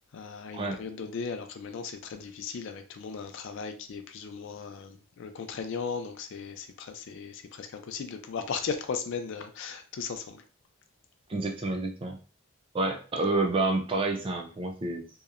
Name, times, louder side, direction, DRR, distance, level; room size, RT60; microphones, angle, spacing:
voice 1, 0.1-10.4, left 5 dB, 55° left, 0.3 m, -37 dB
voice 2, 11.3-12.2 12.7-15.1, right 2 dB, 25° right, 0.3 m, -29 dB
2.8 x 2.0 x 2.4 m
head